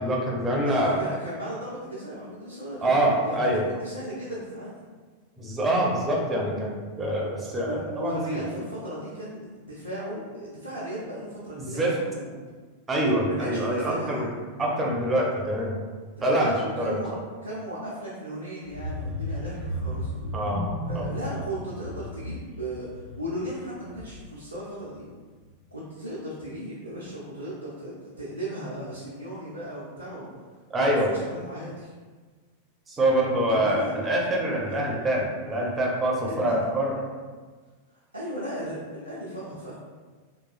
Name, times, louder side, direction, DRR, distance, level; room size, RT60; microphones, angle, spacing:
voice 1, 0.0-1.0 2.8-3.6 5.4-8.4 11.6-11.9 12.9-14.3 14.6-15.7 16.2-17.0 20.3-20.6 20.9-21.1 30.7-31.1 32.9-37.0, right 1 dB, 15° right, -2 dB, 0.6 m, -25 dB
voice 2, 0.6-4.8 7.6-12.3 13.2-14.2 16.3-17.1 17.4-20.1 20.9-25.1 25.7-30.3 30.8-31.9 33.5-33.9 34.7-34.8 36.3-36.7 37.9-39.7, equal, 85° right, -9 dB, 0.5 m, -36 dB
sound 1, 18.6-24.4 24.8-25.1 25.4-25.5, equal, 45° left, 1.2 m, -34 dB
3.0 x 2.3 x 2.3 m, 1.4 s
figure-of-eight pair, 90°, 0 cm